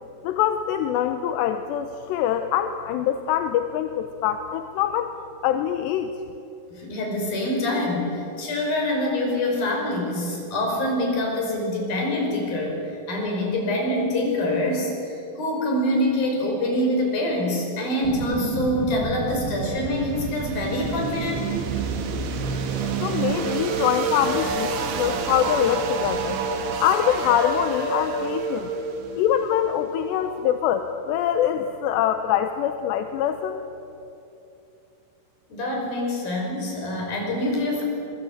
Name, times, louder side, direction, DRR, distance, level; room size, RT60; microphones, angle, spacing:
voice 1, 0.2-5.1 5.4-6.2 23.0-26.4 26.8-28.7 29.2-33.6, left 10 dB, 75° left, 7 dB, 2.9 m, -24 dB
voice 2, 6.7-12.8 13.1-21.6 35.5-37.8, left 1 dB, 50° left, 0 dB, 7.2 m, -25 dB
sound 1, 18.0-30.9, right 5 dB, 65° right, 3.8 m, -28 dB
26.5 x 21.5 x 8.7 m, 2.8 s
omnidirectional pair, 5.4 m